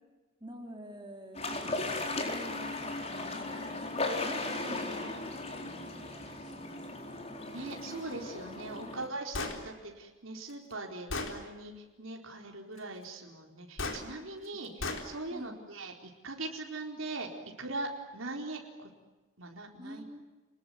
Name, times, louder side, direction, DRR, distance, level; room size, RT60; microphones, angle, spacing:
voice 1, 0.4-7.2 15.3-15.6 19.8-20.3, right 1 dB, 20° right, 3 dB, 3.6 m, -49 dB
sound 1, 1.3-9.1, left 2 dB, 30° left, 4.3 m, -37 dB
voice 2, 7.4-17.3 17.6-18.9 19.4-20.0, right 2 dB, 80° right, 2 dB, 4.3 m, -41 dB
Gunshot gunfire, 9.3-9.6 10.5-10.6 11.1-11.4 13.8-14.0 14.8-15.1, left 3 dB, 70° left, 4.2 m, -34 dB
29.5 x 21.0 x 9.6 m, 1.2 s
head